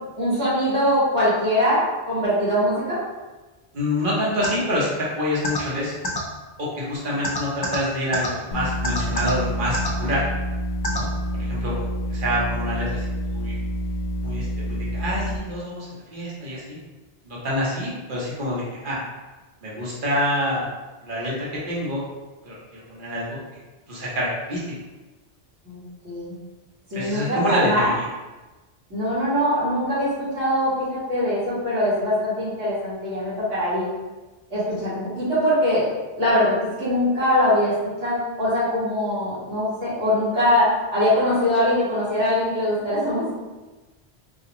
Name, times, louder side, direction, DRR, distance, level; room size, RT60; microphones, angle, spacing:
voice 1, 0.2-3.0 11.3-11.4 11.8-12.0 25.6-26.4 26.9-27.9 28.9-33.9 34.5-35.9 36.2-43.3, left 1 dB, 85° right, -11 dB, 2.0 m, -22 dB
voice 2, 3.7-5.9 6.6-10.2 10.9-11.1 11.3-11.8 12.1-13.6 14.2-15.9 16.1-16.8 17.3-19.0 19.6-20.7 21.0-22.0 22.4-23.4 23.9-24.6 26.9-28.1, equal, 50° right, -6 dB, 1.1 m, -26 dB
sound 1, 4.4-4.5 5.4-5.6 6.0-6.2 7.2-7.8 8.1-8.3 8.8-9.3 9.7-9.9 10.8-11.0, left 2 dB, 30° left, 0.5 m, -25 dB
sound 2, 8.5-15.4, equal, 60° left, 0.8 m, -28 dB
4.1 x 2.4 x 2.9 m, 1.2 s
omnidirectional pair, 1.2 m